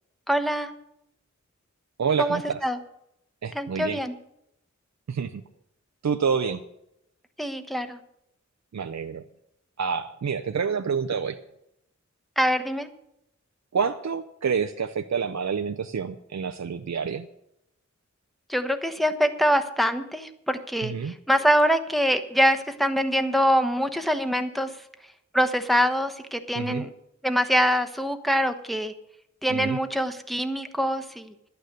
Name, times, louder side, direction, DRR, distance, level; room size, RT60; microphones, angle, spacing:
voice 1, 0.3-0.7 2.2-2.8 3.5-4.1 7.4-8.0 12.4-12.9 18.5-24.7 25.3-26.9 27.2-28.9 29.4-31.3, equal, ahead, 7 dB, 1.1 m, -24 dB
voice 2, 2.0-2.6 3.4-4.0 5.1-5.4 6.0-6.6 8.7-9.2 9.8-11.4 13.7-17.3 20.8-21.1 26.5-26.8 29.5-29.8, right 6 dB, 65° right, 8 dB, 0.6 m, -28 dB
11.5 x 9.2 x 6.6 m, 0.80 s
wide cardioid pair, 50°, 30 cm